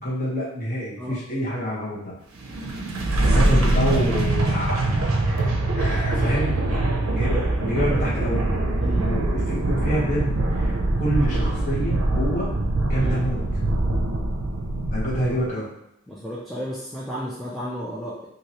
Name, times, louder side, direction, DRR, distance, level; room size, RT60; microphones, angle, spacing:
voice 1, 0.0-2.1 3.2-5.5 5.7-8.4 9.0-12.5 12.9-13.4 14.9-15.7, equal, 40° left, -8 dB, 1.2 m, -27 dB
sound 1, 2.3-15.5, right 2 dB, 75° right, 0.5 m, -23 dB
voice 2, 3.2-4.1 8.8-9.1 12.9-13.2 16.1-18.3, equal, ahead, -8 dB, 0.3 m, -33 dB
3.0 x 2.7 x 2.9 m, 0.83 s
head